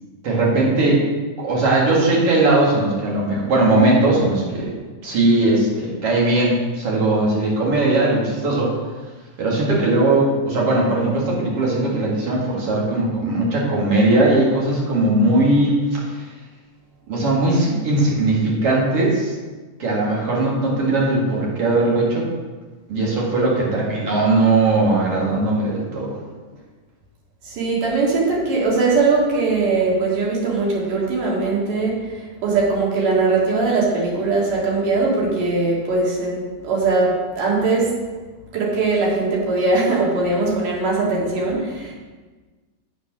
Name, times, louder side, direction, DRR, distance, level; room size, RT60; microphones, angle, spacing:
voice 1, 0.2-1.0 1.4-4.7 5.0-8.7 9.4-16.3 17.1-19.3 19.8-22.2 22.9-26.1, right 2 dB, 45° right, -4 dB, 2.8 m, -19 dB
voice 2, 27.4-37.9 38.5-41.9, right 3 dB, 70° right, -4 dB, 3.6 m, -20 dB
7.8 x 6.3 x 6.0 m, 1.3 s
omnidirectional pair, 3.9 m